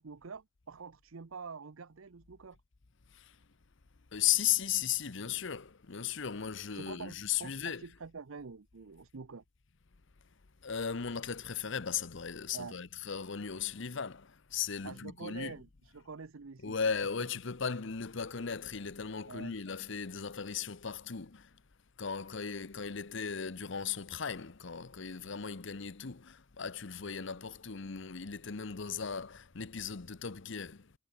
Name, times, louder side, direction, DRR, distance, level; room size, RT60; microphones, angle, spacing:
voice 1, 0.0-2.6 6.7-9.4 12.5-12.8 14.8-16.8 19.3-19.6, right 5 dB, 80° right, 0.7 m, -46 dB
voice 2, 4.1-7.8 10.6-15.5 16.6-21.5 22.0-30.9, left 7 dB, 60° left, 0.9 m, -36 dB
head